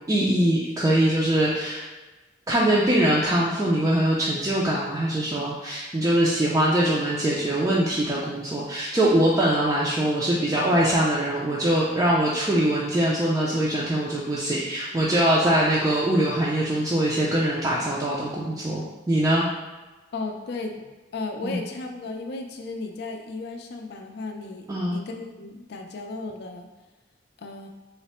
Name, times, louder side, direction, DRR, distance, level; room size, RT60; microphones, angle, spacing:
voice 1, 0.1-1.8 2.5-19.5 21.4-21.6 24.7-25.0, right 1 dB, 20° right, -6 dB, 0.4 m, -22 dB
voice 2, 20.1-20.9 21.1-24.7 24.9-26.7 27.4-27.7, left 3 dB, 65° left, 4 dB, 0.4 m, -34 dB
3.2 x 2.0 x 4.1 m, 1.2 s
head